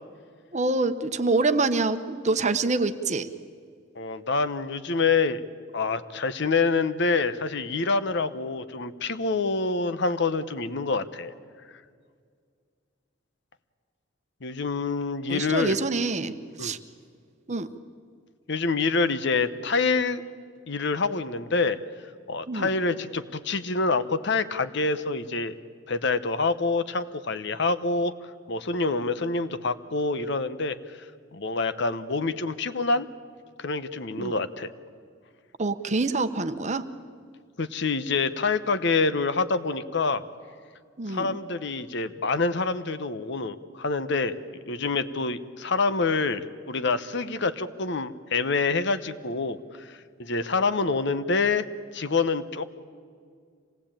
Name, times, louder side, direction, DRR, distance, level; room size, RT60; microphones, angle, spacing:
voice 1, 0.5-3.3 15.3-16.3 16.6-16.8 17.5-17.7 22.5-22.7 34.1-34.3 35.6-36.9 41.0-41.4, right 3 dB, 35° right, 10 dB, 1.0 m, -26 dB
voice 2, 3.9-5.4 5.7-11.3 14.4-15.7 16.6-16.7 18.5-20.2 20.7-21.8 22.3-25.5 25.9-28.1 28.5-30.8 31.3-33.1 33.6-34.7 37.6-40.2 41.1-44.4 44.7-51.6 51.9-52.7, left 4 dB, 60° left, 12 dB, 1.0 m, -26 dB
26.0 x 18.5 x 8.9 m, 2.1 s
head